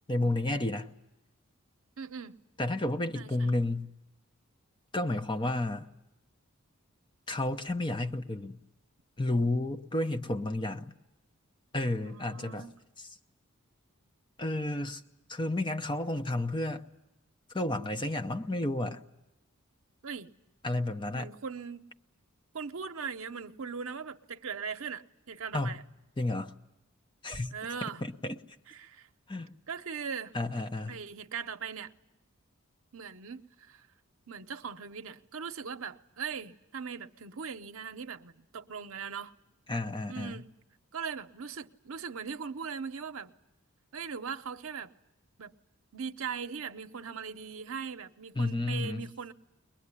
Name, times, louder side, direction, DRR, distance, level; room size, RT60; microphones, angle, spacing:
voice 1, 0.1-0.9 2.6-3.9 4.9-5.9 7.3-8.6 9.2-10.9 11.7-12.7 13.0-13.1 14.4-15.0 15.3-16.8 17.5-19.0 20.6-21.3 25.5-25.8 26.2-26.5 27.2-27.5 28.0-28.4 29.3-29.5 30.3-31.0 39.7-40.4 48.4-49.1, left 2 dB, 20° left, 0.8 m, -31 dB
voice 2, 2.0-2.4 3.1-3.5 12.0-12.7 20.0-20.3 21.1-21.9 22.5-25.8 27.5-28.0 28.7-29.1 29.7-30.3 30.9-31.9 32.9-33.8 34.3-39.3 40.1-40.5 40.9-43.3 43.9-44.9 45.4-45.5 45.9-49.3, right 6 dB, 70° right, 0.8 m, -40 dB
22.0 x 21.0 x 9.8 m
head